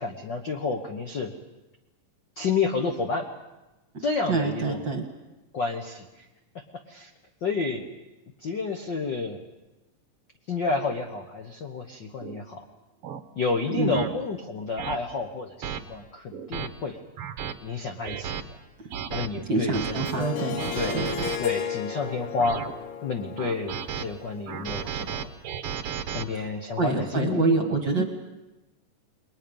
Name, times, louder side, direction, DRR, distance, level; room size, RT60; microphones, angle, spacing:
voice 1, 0.0-1.3 2.4-3.3 4.0-4.9 5.5-6.3 6.5-7.1 7.4-7.8 8.4-9.4 10.5-12.6 13.4-17.0 17.6-18.6 19.1-20.3 20.7-21.0 21.4-22.6 23.0-25.3 26.1-27.7 28.0-28.1, left 4 dB, 85° left, 3 dB, 1.0 m, -30 dB
voice 2, 4.3-5.0 13.7-14.0 19.5-21.1 26.3-26.4 26.8-28.0, right 4 dB, 45° right, 4 dB, 1.6 m, -26 dB
sound 1, 12.2-12.4 13.0-13.2 13.9-14.1 14.8-15.0 15.6-15.8 16.3-16.7 17.2-17.5 18.0-18.4 18.9-19.3 19.7-20.1 20.6-21.4 22.0-22.7 23.4-24.0 24.5-26.2, right 8 dB, 70° right, 1.4 m, -33 dB
Harp, 20.0-25.0, left 8 dB, 65° left, 2.6 m, -34 dB
29.0 x 21.5 x 5.4 m, 1.0 s
omnidirectional pair, 4.0 m